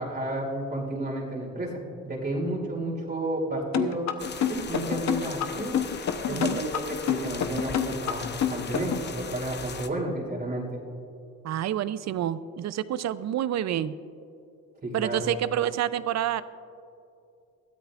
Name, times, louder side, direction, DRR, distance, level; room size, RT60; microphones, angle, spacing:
voice 1, 0.0-4.0 4.5-5.8 6.3-10.6 14.8-15.3, right 1 dB, 35° right, -3 dB, 2.8 m, -31 dB
sound 1, 3.7-9.1, left 9 dB, 65° left, 0.9 m, -27 dB
sound 2, 4.2-9.9, left 5 dB, 35° left, 0.8 m, -39 dB
voice 2, 6.3-6.7 11.4-14.0 14.9-16.4, right 11 dB, 60° right, 15 dB, 0.6 m, -28 dB
21.0 x 14.0 x 2.5 m, 2.6 s
cardioid pair, 90°, 30 cm